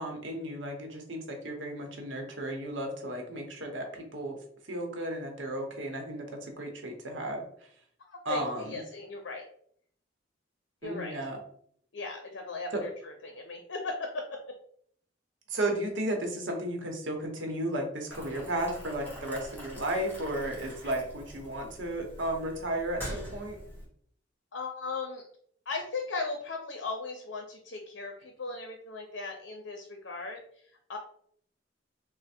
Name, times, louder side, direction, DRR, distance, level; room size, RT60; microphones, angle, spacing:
voice 1, 0.0-4.4 4.7-7.4 8.2-8.8 10.8-11.4 12.7-12.8 15.5-23.6, right 1 dB, 85° right, 2 dB, 0.9 m, -34 dB
voice 2, 8.0-9.4 10.8-11.1 11.9-14.6 24.5-25.2 25.7-30.6 30.9-31.0, left 3 dB, 70° left, 3 dB, 0.6 m, -37 dB
Boiling, 18.1-23.9, equal, 10° left, 1.2 m, -44 dB
3.3 x 2.1 x 4.2 m, 0.64 s
head